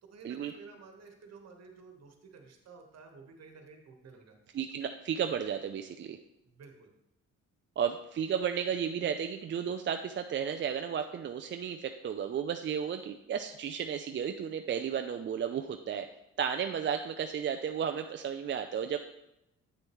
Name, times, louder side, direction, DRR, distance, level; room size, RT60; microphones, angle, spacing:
voice 1, 0.0-4.5 6.4-6.9, right 4 dB, 60° right, 3 dB, 1.5 m, -53 dB
voice 2, 4.5-6.2 7.8-16.1 16.4-19.0, right 8 dB, 40° right, 6 dB, 0.4 m, -33 dB
8.5 x 6.3 x 3.1 m, 0.88 s
cardioid pair, 90°, 30 cm